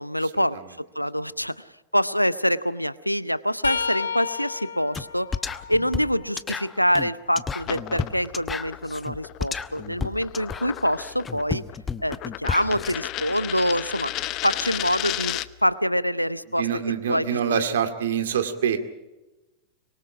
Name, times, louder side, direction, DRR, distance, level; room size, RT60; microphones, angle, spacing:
voice 1, 0.0-1.6 1.9-5.3 5.7-11.6 12.0-14.1 14.4-16.7 17.1-17.6, equal, 90° left, 19 dB, 0.7 m, -25 dB
sound 1, 3.6-7.4 7.9-9.9 12.8-13.0 14.2-14.4 15.7-15.8, left 6 dB, 70° left, 1.6 m, -35 dB
sound 2, 4.9-5.1 5.3-12.9, left 5 dB, 15° left, 1.0 m, -32 dB
sound 3, 7.6-15.7, left 16 dB, 40° left, 0.8 m, -34 dB
voice 2, 16.6-18.8, right 8 dB, 60° right, 7 dB, 2.3 m, -25 dB
25.0 x 23.5 x 5.0 m, 1.0 s
figure-of-eight pair, 90°, 0 cm